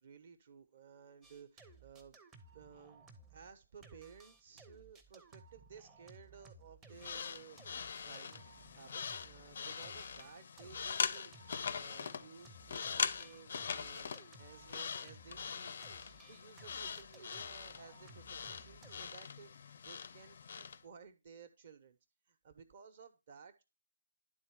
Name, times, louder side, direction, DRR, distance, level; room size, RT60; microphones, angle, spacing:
voice 1, 0.0-2.2 2.5-8.4 8.8-15.8 16.3-22.0 22.3-23.6, right 6 dB, 40° right, 9 dB, 1.1 m, -57 dB
sound 1, 1.2-3.6 3.8-15.5 15.8-19.1, right 3 dB, 15° right, 0.7 m, -60 dB
sound 2, 6.9-20.8, left 6 dB, 50° left, 0.4 m, -42 dB
10.5 x 3.7 x 4.7 m, 0.28 s
figure-of-eight pair, 150°, 0 cm